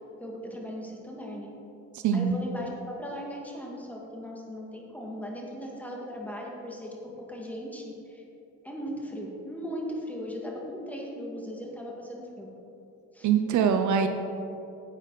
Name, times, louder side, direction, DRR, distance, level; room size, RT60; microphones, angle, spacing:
voice 1, 0.2-1.5 2.1-8.2 8.6-12.5 13.1-13.3, equal, 5° left, -2 dB, 2.0 m, -38 dB
voice 2, 1.9-2.4 13.2-14.1, right 7 dB, 75° right, 7 dB, 0.7 m, -23 dB
10.5 x 8.2 x 4.1 m, 2.8 s
cardioid pair, 90°, 30 cm